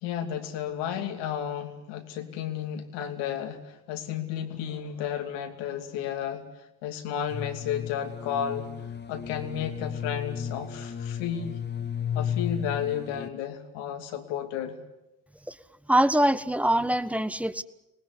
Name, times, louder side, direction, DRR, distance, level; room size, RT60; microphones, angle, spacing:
voice 1, 0.0-8.7 9.1-11.6 12.1-14.8, left 9 dB, 75° left, 6 dB, 2.9 m, -33 dB
sound 1, 7.3-13.3, left 8 dB, 25° left, 1.6 m, -34 dB
voice 2, 15.9-17.6, right 1 dB, 5° right, 12 dB, 1.4 m, -23 dB
25.5 x 19.5 x 9.8 m, 0.93 s
hypercardioid pair, 60°, 43 cm